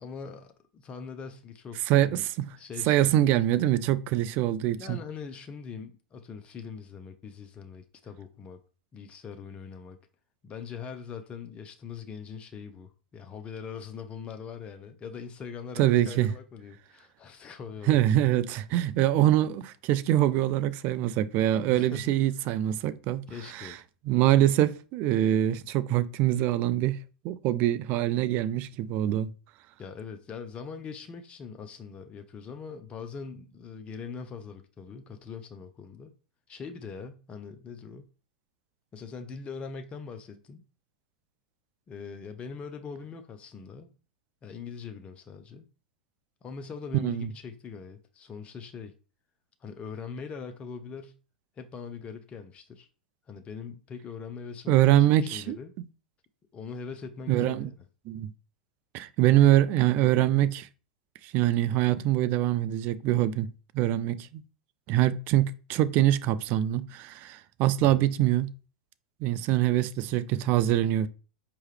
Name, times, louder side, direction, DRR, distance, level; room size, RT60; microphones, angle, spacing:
voice 1, 0.0-2.3 2.6-3.2 4.7-8.6 8.9-10.0 10.4-18.1 21.7-22.1 23.3-23.8 29.8-36.1 36.5-38.1 38.9-40.6 41.9-43.9 44.4-45.7 46.4-48.9 49.6-51.2 51.6-52.9 53.3-55.7 56.5-57.7 67.8-68.0, left 5 dB, 25° left, 0.5 m, -42 dB
voice 2, 1.9-2.5 2.9-5.0 15.8-16.3 17.9-23.2 23.5-23.7 24.1-27.0 27.2-29.3 46.9-47.3 54.7-55.6 57.3-57.7 58.1-58.3 58.9-60.7 61.2-63.5 63.7-64.4 64.9-68.5 69.2-71.1, right 13 dB, 45° right, 0.4 m, -24 dB
4.6 x 2.9 x 3.2 m
hypercardioid pair, 100°, 5 cm